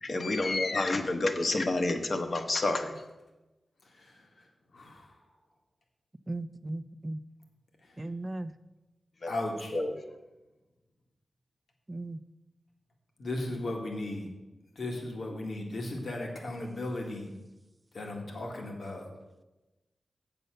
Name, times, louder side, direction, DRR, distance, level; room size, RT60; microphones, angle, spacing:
voice 1, 0.0-3.0 9.2-9.3 9.7-9.9, left 2 dB, 55° left, 7 dB, 1.1 m, -29 dB
voice 2, 3.8-5.1 7.8-8.0 9.3-9.7 13.2-14.3 14.7-17.3 17.9-19.1, left 2 dB, 70° left, 1 dB, 1.8 m, -36 dB
voice 3, 6.3-7.2 8.0-8.5 11.9-12.2, right 2 dB, 25° right, 12 dB, 0.5 m, -36 dB
7.9 x 6.9 x 6.6 m, 1.1 s
wide cardioid pair, 75°, 0 cm